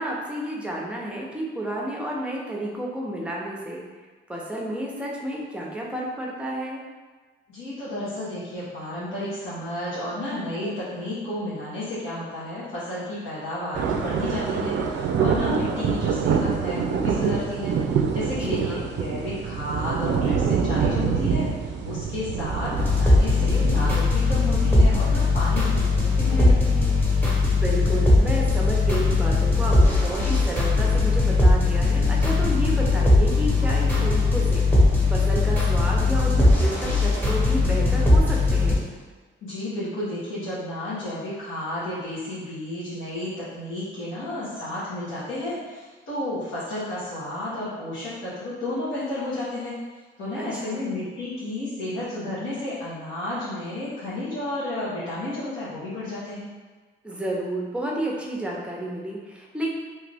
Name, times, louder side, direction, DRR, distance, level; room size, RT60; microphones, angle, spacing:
voice 1, 0.0-3.8 4.3-6.8 18.4-18.9 27.4-34.7 35.1-38.9 50.4-50.8 57.0-59.7, right 1 dB, 5° right, -3 dB, 0.7 m, -31 dB
voice 2, 7.5-26.9 39.4-49.8 50.2-56.5, left 1 dB, 80° left, -11 dB, 1.2 m, -32 dB
sound 1, 13.7-24.0, right 6 dB, 65° right, 0.4 m, -25 dB
sound 2, 22.8-38.7, left 2 dB, 10° left, 1.1 m, -20 dB
2.9 x 2.4 x 3.4 m, 1.4 s
cardioid pair, 90°, 20 cm